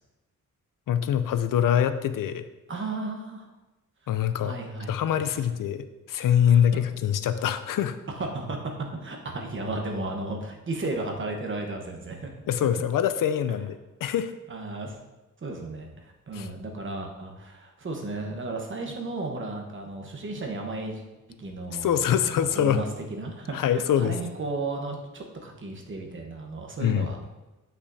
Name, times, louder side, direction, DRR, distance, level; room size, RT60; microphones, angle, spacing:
voice 1, 0.9-2.5 4.1-4.5 4.9-8.0 12.5-13.7 14.0-14.3 16.3-16.5 21.7-22.8 23.5-24.2 26.8-27.1, left 9 dB, 80° left, 11 dB, 0.5 m, -24 dB
voice 2, 2.7-3.5 4.3-5.2 6.5-6.6 8.1-8.6 9.0-12.3 14.5-15.0 15.4-21.0 21.4-27.2, right 2 dB, 40° right, 2 dB, 1.1 m, -34 dB
8.2 x 5.9 x 2.7 m, 1.1 s
wide cardioid pair, 150°, 32 cm